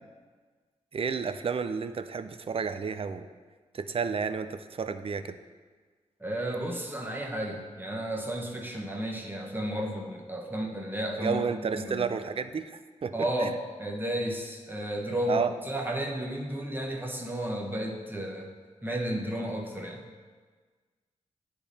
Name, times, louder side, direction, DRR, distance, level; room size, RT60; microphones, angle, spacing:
voice 1, 0.9-3.3 3.7-5.4 11.2-12.7 13.0-13.6 15.3-15.5, right 6 dB, 45° right, 10 dB, 0.4 m, -31 dB
voice 2, 6.2-11.4 11.7-12.1 13.1-18.5 18.8-20.1, right 1 dB, 15° right, 0 dB, 1.2 m, -33 dB
9.6 x 3.5 x 4.2 m, 1.4 s
cardioid pair, 55°, 13 cm